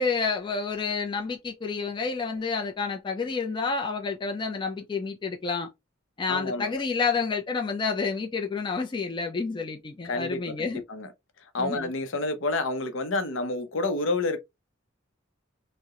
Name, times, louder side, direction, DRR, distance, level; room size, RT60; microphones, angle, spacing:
voice 1, 0.0-5.7 6.2-10.8 11.6-11.9, left 4 dB, 25° left, 0.3 m, -29 dB
voice 2, 6.3-6.8 10.0-11.1 11.5-14.4, left 2 dB, 70° left, 0.6 m, -29 dB
2.8 x 2.0 x 2.3 m
head